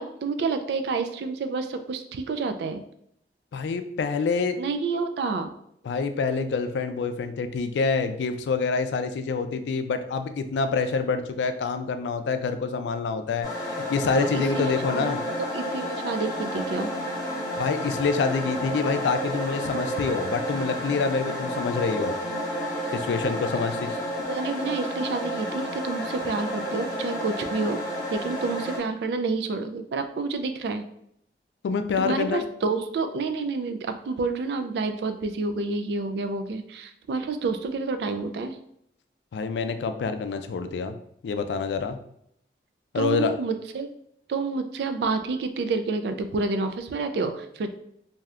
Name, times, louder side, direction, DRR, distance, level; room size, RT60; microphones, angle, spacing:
voice 1, 0.0-2.8 4.6-5.5 14.2-16.9 24.3-30.8 32.0-38.6 42.9-43.9 44.3-47.7, right 4 dB, 75° right, 8 dB, 0.3 m, -29 dB
voice 2, 3.5-4.6 5.8-15.2 17.6-22.2 22.9-24.0 31.6-32.4 39.3-40.9 41.2-42.0 42.9-43.3, left 4 dB, 85° left, 8 dB, 0.3 m, -26 dB
sound 1, 13.4-28.8, equal, 20° left, 0.9 m, -31 dB
2.7 x 2.4 x 3.2 m, 0.72 s
head